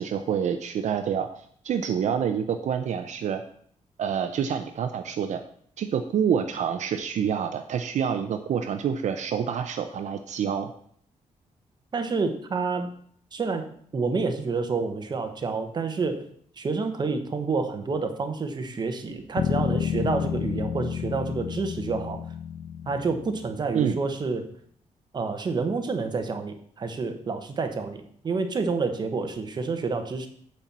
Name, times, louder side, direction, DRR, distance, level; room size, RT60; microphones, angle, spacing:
voice 1, 0.0-3.4 4.0-5.4 5.8-10.7 23.7-24.0, right 8 dB, 70° right, 7 dB, 0.6 m, -27 dB
voice 2, 11.9-12.9 13.3-13.7 13.9-16.3 16.6-22.2 22.9-24.4 25.1-30.3, right 4 dB, 35° right, 7 dB, 1.0 m, -28 dB
Bass guitar, 19.4-23.7, left 9 dB, 70° left, 0.6 m, -30 dB
9.1 x 4.4 x 7.3 m, 0.62 s
wide cardioid pair, 180°, 13 cm